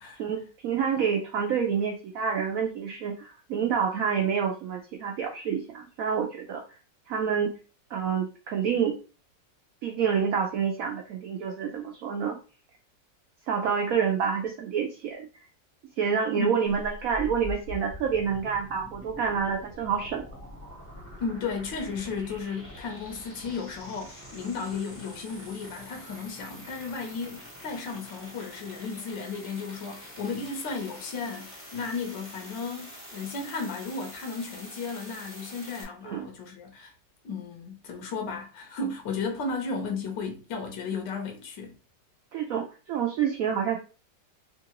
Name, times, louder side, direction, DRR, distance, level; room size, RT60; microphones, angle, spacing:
voice 1, 0.2-6.6 7.1-7.6 7.9-9.0 9.8-12.4 13.5-15.3 16.0-20.2 36.1-36.3 42.3-43.8, right 7 dB, 75° right, 0.8 m, -28 dB
sound 1, 16.7-35.8, left 1 dB, 10° left, 0.6 m, -45 dB
voice 2, 21.2-36.9 37.2-41.8, left 4 dB, 80° left, 1.5 m, -34 dB
3.6 x 2.4 x 2.9 m
omnidirectional pair, 2.0 m